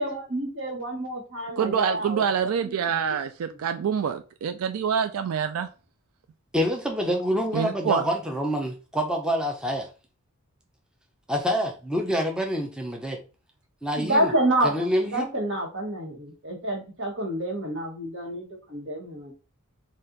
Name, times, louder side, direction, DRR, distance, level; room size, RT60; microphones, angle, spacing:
voice 1, 0.0-2.2 2.6-3.2 3.5-3.6 14.0-19.3, right 1 dB, 60° right, 1 dB, 1.4 m, -28 dB
voice 2, 1.6-5.7 7.5-8.0, right 7 dB, 85° right, 9 dB, 0.3 m, -26 dB
voice 3, 6.5-9.9 11.3-13.2 13.8-14.3 14.6-15.3, equal, 5° right, 1 dB, 0.6 m, -26 dB
4.2 x 2.4 x 3.9 m, 0.34 s
head